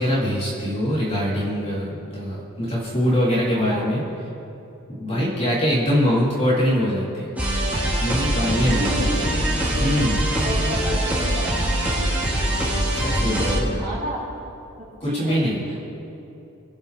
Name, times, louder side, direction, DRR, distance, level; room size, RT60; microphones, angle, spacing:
voice 1, 0.0-4.0 5.0-7.3 8.0-9.1 9.8-10.2 13.0-13.8 15.0-15.6, equal, 30° left, -7 dB, 3.6 m, -23 dB
voice 2, 3.5-3.9 5.1-5.5 8.6-9.4 10.4-12.3 13.3-14.5 15.0-15.8, equal, 40° right, -10 dB, 3.2 m, -31 dB
sound 1, 7.4-13.6, right 1 dB, 5° right, 2.8 m, -23 dB
26.0 x 9.7 x 3.5 m, 2.8 s
head